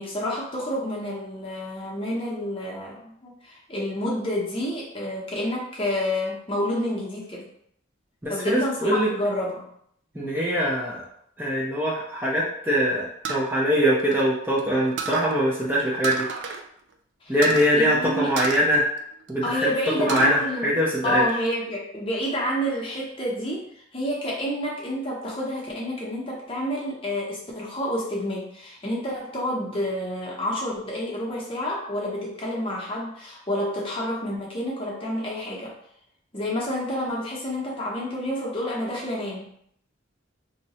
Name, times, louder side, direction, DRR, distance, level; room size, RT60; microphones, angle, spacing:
voice 1, 0.0-7.5 8.3-9.7 17.2-17.3 17.8-18.3 19.4-20.6 21.0-35.7 36.3-39.5, left 1 dB, 30° left, -4 dB, 0.8 m, -29 dB
voice 2, 8.2-9.1 10.1-11.1 11.4-16.3 17.3-18.8 19.3-19.7 20.0-21.2, equal, 10° right, -6 dB, 0.5 m, -22 dB
sound 1, 13.2-14.6 15.0-15.3 16.0-16.7 16.9-17.0 17.4-17.7 18.4-19.5 19.9-20.4 20.8-21.5, right 5 dB, 65° right, 0.4 m, -32 dB
2.8 x 2.2 x 4.1 m, 0.68 s
head